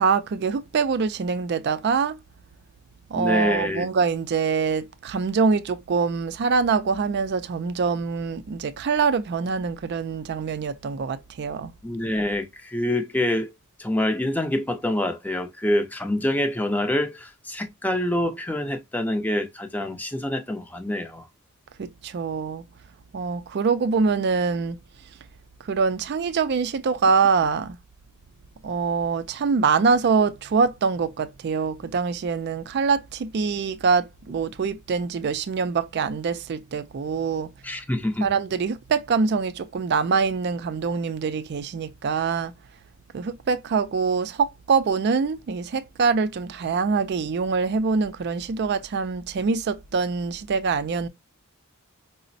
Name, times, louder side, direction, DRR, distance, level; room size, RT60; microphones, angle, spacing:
voice 1, 0.0-2.2 3.1-11.7 21.8-22.6 23.1-24.8 25.6-27.8 28.6-37.5 38.2-42.5 43.1-51.1, right 5 dB, 50° right, 0.4 m, -24 dB
voice 2, 3.1-3.9 11.8-13.5 13.8-21.3 37.6-38.3, left 1 dB, 10° left, 0.5 m, -26 dB
4.9 x 2.0 x 2.5 m
head